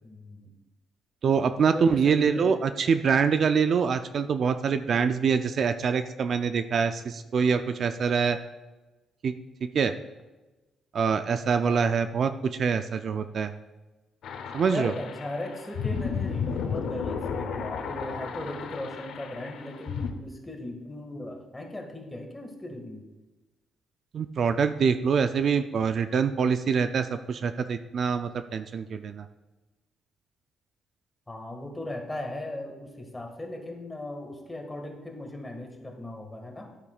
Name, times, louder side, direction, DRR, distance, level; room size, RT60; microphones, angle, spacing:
voice 1, 0.0-0.5 1.7-2.6 11.7-11.9 14.7-23.0 31.3-36.7, left 1 dB, 15° left, 2 dB, 1.7 m, -37 dB
voice 2, 1.2-8.4 9.2-9.3 9.7-9.9 10.9-13.5 14.5-14.9 24.1-29.2, right 6 dB, 55° right, 10 dB, 0.4 m, -25 dB
sound 1, 14.2-20.1, left 6 dB, 75° left, 0.8 m, -33 dB
11.0 x 8.3 x 2.4 m, 1.1 s
cardioid pair, 90°, 0 cm